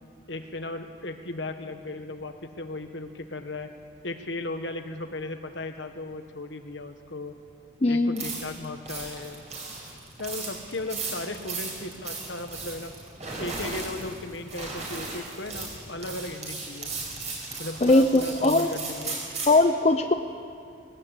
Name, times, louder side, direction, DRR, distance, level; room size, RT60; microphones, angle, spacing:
voice 1, 0.3-3.7 4.0-7.3 7.9-9.4 10.2-12.9 13.4-16.9 17.6-19.2, left 2 dB, 65° left, 7 dB, 1.5 m, -36 dB
voice 2, 7.8-8.3 17.8-18.7 19.5-20.1, left 2 dB, 35° left, 6 dB, 0.6 m, -20 dB
sound 1, 8.1-19.6, right 3 dB, 35° right, 5.6 m, -36 dB
19.5 x 18.5 x 8.3 m, 2.5 s
head